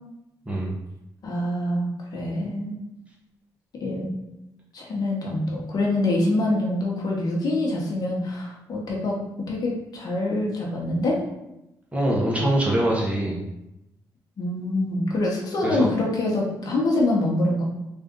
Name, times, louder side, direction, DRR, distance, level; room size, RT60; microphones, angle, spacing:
voice 1, 0.5-0.8 11.9-13.4 15.6-15.9, right 1 dB, 15° right, -3 dB, 0.9 m, -23 dB
voice 2, 1.2-2.7 3.8-4.1 4.7-11.2 14.4-17.6, left 1 dB, 60° left, -2 dB, 1.0 m, -25 dB
3.6 x 2.5 x 3.7 m, 0.90 s
cardioid pair, 110°, 8 cm